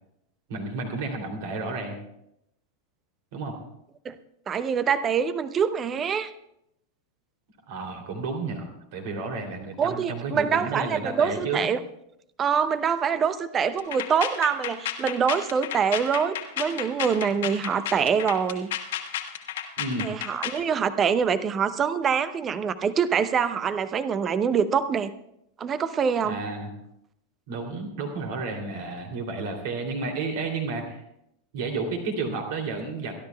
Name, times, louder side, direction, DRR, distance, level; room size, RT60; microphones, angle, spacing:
voice 1, 0.5-2.0 3.3-3.6 7.7-11.7 19.8-20.1 26.2-26.7 27.5-31.0 31.5-33.1, right 3 dB, 50° right, 3 dB, 2.9 m, -31 dB
voice 2, 4.5-6.3 9.8-11.8 12.4-18.7 20.0-25.1 25.6-26.4, right 7 dB, 25° right, 15 dB, 0.7 m, -25 dB
sound 1, 13.8-20.6, left 11 dB, 55° left, 1.3 m, -32 dB
29.5 x 12.0 x 2.3 m, 0.80 s
figure-of-eight pair, 90°, 0 cm